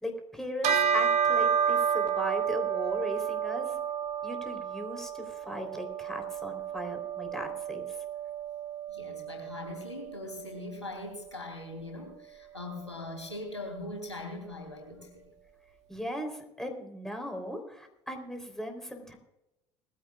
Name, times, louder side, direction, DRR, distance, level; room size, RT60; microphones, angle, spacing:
voice 1, 0.0-3.8 4.2-7.8 15.9-19.2, equal, 5° left, 4 dB, 3.7 m, -38 dB
Bell, 0.6-10.3, right 7 dB, 50° right, 2.1 m, -30 dB
voice 2, 8.9-15.2, left 2 dB, 85° left, 3 dB, 3.4 m, -41 dB
20.5 x 15.5 x 2.4 m, 0.89 s
figure-of-eight pair, 60°, 15 cm